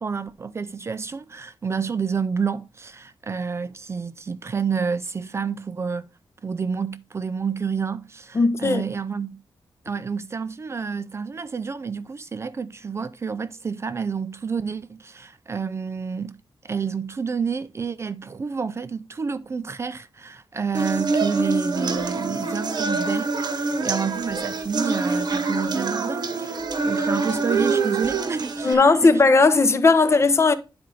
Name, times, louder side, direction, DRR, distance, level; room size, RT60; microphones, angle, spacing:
voice 1, 0.0-6.1 6.4-9.4 9.9-16.4 16.6-29.1, right 6 dB, 30° right, 0.4 m, -29 dB
voice 2, 8.3-8.8 28.6-30.5, left 3 dB, 30° left, 0.6 m, -17 dB
sound 1, 20.7-28.7, right 3 dB, 50° right, 0.9 m, -25 dB
10.0 x 4.3 x 3.7 m
wide cardioid pair, 175°, 9 cm